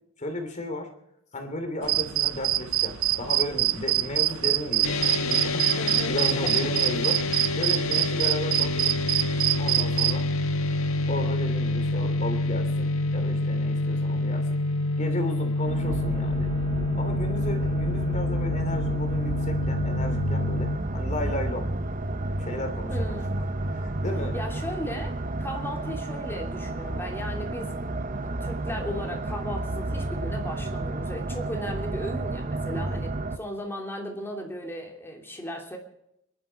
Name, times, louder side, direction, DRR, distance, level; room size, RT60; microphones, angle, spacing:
voice 1, 0.2-0.9 1.3-7.2 7.5-8.9 9.6-10.3 11.1-14.6 15.0-16.5 16.9-21.7 22.4-23.2 23.7-24.3 32.8-33.0, left 1 dB, 35° left, 5 dB, 3.0 m, -34 dB
sound 1, 1.8-10.2, right 14 dB, 85° right, 0.6 m, -26 dB
sound 2, 4.8-20.8, left 2 dB, 85° left, 1.6 m, -27 dB
voice 2, 5.8-6.5 22.9-23.4 24.3-27.7 28.2-35.8, equal, 10° left, 1 dB, 3.0 m, -36 dB
sound 3, 15.7-33.4, right 2 dB, 40° right, 0.8 m, -31 dB
26.5 x 12.0 x 4.6 m, 0.80 s
head